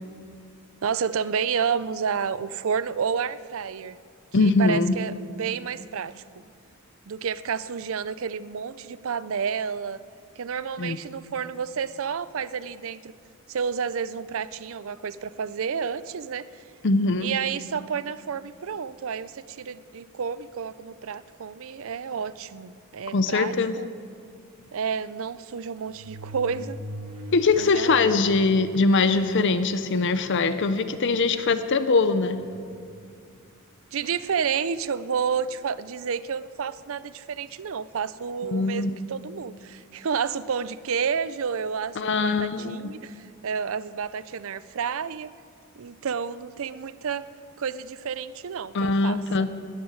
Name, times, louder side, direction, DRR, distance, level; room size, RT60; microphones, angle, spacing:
voice 1, 0.8-4.0 4.4-6.2 7.1-10.0 10.4-13.1 13.5-16.6 17.2-23.9 24.7-26.8 27.6-28.2 33.9-45.3 45.8-47.3 47.6-49.5, right 6 dB, 65° right, 16 dB, 0.5 m, -30 dB
voice 2, 4.3-4.9 10.8-11.0 16.8-17.3 23.1-23.7 27.3-32.4 38.4-38.9 42.0-42.8 48.7-49.5, left 3 dB, 55° left, 11 dB, 0.6 m, -22 dB
sound 1, 22.1-22.4 23.1-23.2 23.5-23.6 24.9-25.0 25.7-28.0 28.4-28.5 29.4-29.5 29.8-30.2 30.8-31.0 32.2-33.1 34.0-34.3, equal, 85° right, 2.8 m, -41 dB
13.5 x 9.5 x 9.7 m, 2.3 s
head